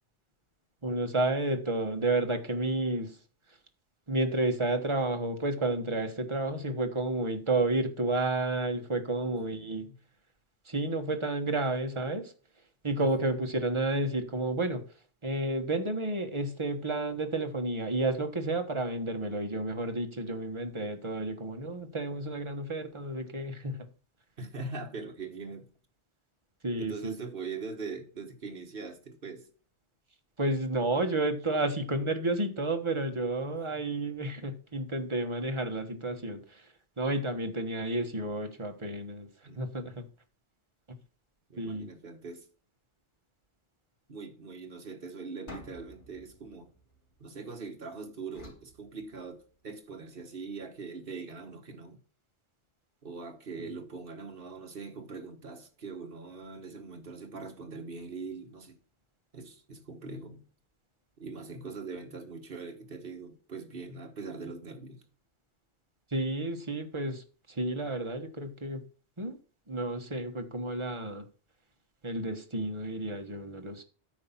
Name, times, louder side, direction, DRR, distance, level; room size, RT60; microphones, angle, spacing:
voice 1, 0.8-3.2 4.1-9.9 10.6-12.3 12.8-14.8 15.2-23.9 26.6-27.2 30.4-36.7 37.0-39.3 39.6-40.0 41.6-41.9 53.6-53.8 66.1-68.8 69.2-69.4 69.7-71.3 72.0-73.8, right 2 dB, 25° right, 1.3 m, -31 dB
voice 2, 9.2-10.0 13.0-13.1 24.4-25.7 26.8-29.5 33.7-33.8 39.4-40.0 41.5-42.5 44.1-46.7 47.2-52.0 53.0-58.8 59.3-60.4 61.2-65.0, right 4 dB, 50° right, 1.6 m, -42 dB
sound 1, 45.5-47.7 48.3-49.7, left 2 dB, 75° left, 3.4 m, -51 dB
9.6 x 5.8 x 5.7 m
omnidirectional pair, 1.2 m